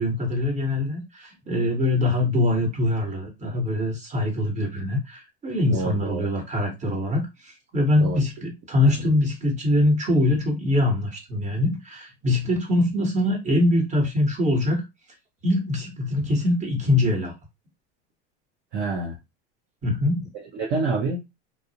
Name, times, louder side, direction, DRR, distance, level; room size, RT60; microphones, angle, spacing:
voice 1, 0.0-14.8 15.4-17.3 19.8-20.3, left 1 dB, 20° right, 1.1 m, -23 dB
voice 2, 5.7-6.3 8.0-8.2 8.8-9.1 18.7-19.2 20.5-21.2, right 3 dB, 40° right, 0.7 m, -27 dB
2.3 x 2.0 x 2.8 m
supercardioid pair, 125°, 34 cm